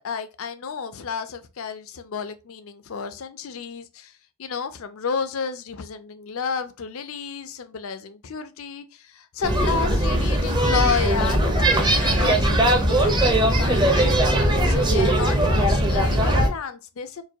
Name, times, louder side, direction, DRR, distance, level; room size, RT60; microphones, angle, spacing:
voice 1, 0.0-4.1 4.4-14.2 14.6-17.2, left 6 dB, 70° left, 0.5 m, -31 dB
sound 1, 9.4-16.5, right 1 dB, 20° right, 0.7 m, -20 dB
4.6 x 2.2 x 2.7 m
head